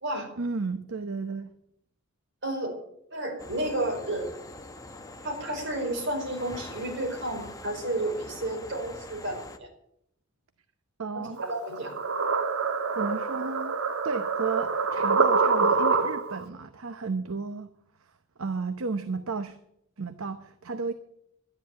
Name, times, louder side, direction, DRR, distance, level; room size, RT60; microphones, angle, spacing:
voice 1, 0.4-1.5 11.0-11.4 12.9-13.8 14.0-17.7 18.4-19.6 20.0-20.9, right 4 dB, 75° right, 10 dB, 0.8 m, -33 dB
voice 2, 2.4-2.7 3.1-4.3 5.2-9.7 11.1-12.0, right 1 dB, 60° right, 2 dB, 4.8 m, -31 dB
sound 1, 3.4-9.6, left 2 dB, 15° left, 1.0 m, -44 dB
sound 2, 11.4-16.4, right 4 dB, 90° right, 1.3 m, -26 dB
12.0 x 10.5 x 8.3 m, 0.74 s
head